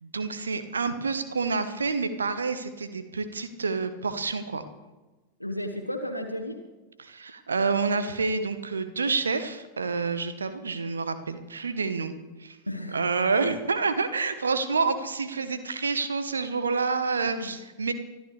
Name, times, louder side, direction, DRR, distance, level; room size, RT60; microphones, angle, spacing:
voice 1, 0.0-4.6 7.0-12.1 12.4-12.6 12.9-17.9, right 4 dB, 75° right, 10 dB, 1.1 m, -28 dB
voice 2, 5.4-6.6 12.7-13.0 14.8-14.9 17.3-17.5, left 1 dB, 90° left, 2 dB, 1.1 m, -34 dB
24.5 x 12.5 x 3.3 m, 1.2 s
figure-of-eight pair, 90°, 0 cm